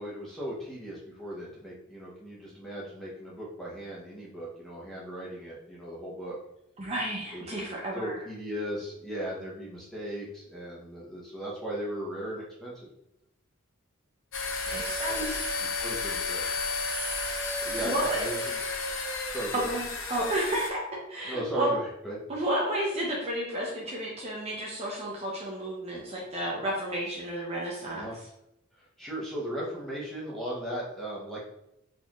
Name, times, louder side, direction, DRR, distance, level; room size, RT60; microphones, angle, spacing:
voice 1, 0.0-6.3 7.3-7.6 7.9-12.9 15.6-16.5 17.6-18.4 19.3-19.7 21.3-22.2 27.9-28.2 29.0-31.4, right 1 dB, ahead, -6 dB, 0.9 m, -37 dB
voice 2, 6.8-8.2 14.7-15.5 17.8-18.2 19.5-21.8 22.3-28.1, right 1 dB, 30° right, -3 dB, 0.6 m, -32 dB
sound 1, 14.3-20.7, left 3 dB, 60° left, 0.6 m, -32 dB
4.1 x 2.6 x 3.0 m, 0.81 s
head